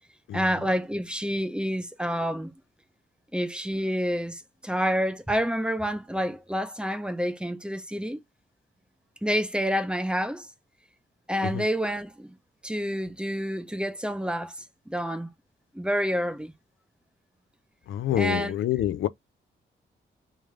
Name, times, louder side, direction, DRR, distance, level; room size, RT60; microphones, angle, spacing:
voice 1, 0.3-2.5 3.3-8.2 9.2-10.5 11.3-12.3 12.6-15.3 15.7-16.5 18.2-18.6, equal, 5° right, 0.7 m, -28 dB
voice 2, 17.9-19.1, left 12 dB, 90° left, 0.5 m, -26 dB
3.5 x 3.2 x 3.2 m
cardioid pair, 90°, 20 cm